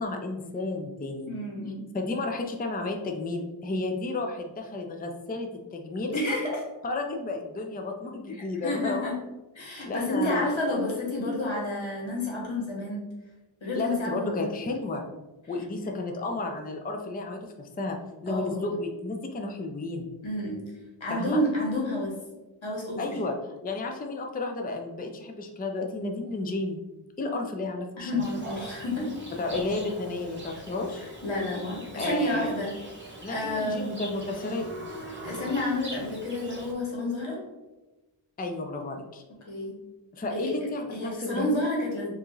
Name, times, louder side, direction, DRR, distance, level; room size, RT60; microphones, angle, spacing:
voice 1, 0.0-1.3 1.9-6.2 6.8-9.2 9.8-10.5 13.7-15.0 15.5-18.0 18.2-20.1 21.1-21.4 23.0-23.3 23.6-26.8 27.2-28.3 29.4-31.0 31.9-32.5 33.2-34.7 38.4-39.2 40.1-41.5, left 2 dB, 20° left, 3 dB, 0.4 m, -32 dB
voice 2, 1.3-1.8 6.1-6.6 8.6-9.1 9.6-13.0 13.6-14.5 18.3-18.7 20.2-20.6 21.0-22.1 22.6-23.1 28.0-29.1 31.2-32.7 33.3-34.0 35.1-37.4 39.5-39.7 40.3-40.5 40.9-42.1, left 1 dB, 85° left, -3 dB, 1.3 m, -30 dB
Livestock farm animals working animals, 28.2-36.7, right 1 dB, 25° right, 1.1 m, -42 dB
4.5 x 2.7 x 3.0 m, 1.1 s
wide cardioid pair, 60°, 46 cm